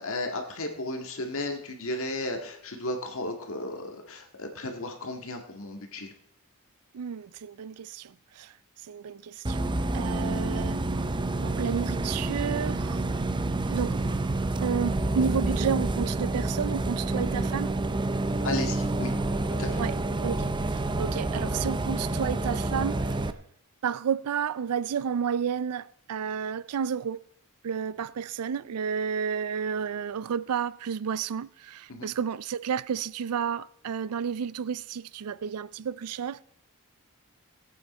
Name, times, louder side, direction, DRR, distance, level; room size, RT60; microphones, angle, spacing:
voice 1, 0.0-6.1 18.4-19.1 19.6-19.8 31.9-32.1, left 2 dB, 65° left, 1.9 m, -34 dB
voice 2, 6.9-8.5 8.8-10.8 11.4-13.1 13.7-14.1 14.6-17.8 19.8-23.2 23.8-27.2 27.6-36.4, right 7 dB, 85° right, 0.4 m, -31 dB
Bus, 9.4-23.3, right 2 dB, 20° right, 0.6 m, -28 dB
19.0 x 8.6 x 4.3 m
head